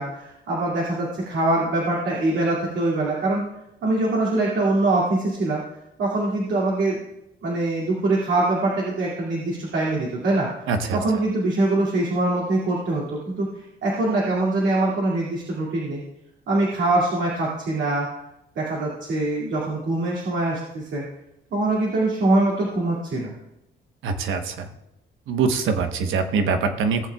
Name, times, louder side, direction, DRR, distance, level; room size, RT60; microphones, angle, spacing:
voice 1, 0.0-3.4 3.8-5.6 6.0-7.0 7.4-16.0 16.5-18.1 18.6-21.0 21.5-23.3, right 2 dB, 70° right, -5 dB, 2.5 m, -23 dB
voice 2, 10.7-11.0 24.0-24.7 25.3-27.1, right 5 dB, 85° right, 7 dB, 1.0 m, -23 dB
17.5 x 7.4 x 2.3 m, 0.86 s
cardioid pair, 90°, 20 cm